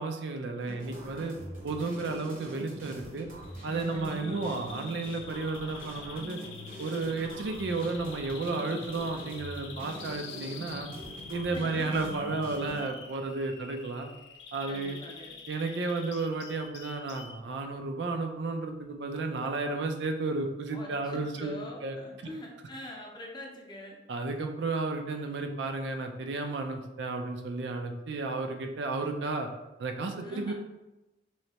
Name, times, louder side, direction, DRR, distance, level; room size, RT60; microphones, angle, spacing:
voice 1, 0.0-1.4 1.6-3.3 3.6-6.4 6.8-10.9 11.3-14.1 14.5-15.0 15.5-21.6 21.8-22.0 24.1-29.5 29.8-30.5, right 3 dB, 70° right, 4 dB, 0.4 m, -33 dB
sound 1, 0.6-12.8, right 1 dB, 50° right, 0.9 m, -44 dB
Bird vocalization bird call bird song, 3.4-17.4, left 5 dB, 75° left, 0.4 m, -47 dB
voice 2, 3.9-4.6 11.5-12.1 14.7-15.4 20.7-24.0 30.2-30.5, left 1 dB, 25° left, -1 dB, 0.6 m, -44 dB
3.1 x 3.1 x 2.8 m, 1.0 s
head